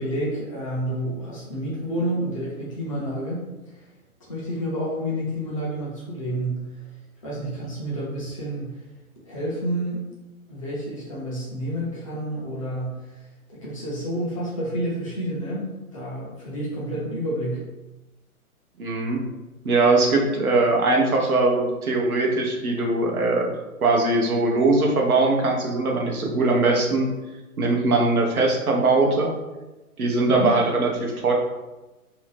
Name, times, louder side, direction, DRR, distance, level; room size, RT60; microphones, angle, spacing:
voice 1, 0.0-3.4 3.7-3.8 4.3-6.8 7.2-8.8 9.2-10.0 10.5-17.7 30.2-30.5, equal, 25° left, -6 dB, 0.5 m, -29 dB
voice 2, 18.8-19.2 19.6-23.5 23.8-27.1 27.6-29.3 30.0-31.3, right 3 dB, 70° right, 0 dB, 0.8 m, -21 dB
2.7 x 2.1 x 3.3 m, 1.1 s
figure-of-eight pair, 120°, 45 cm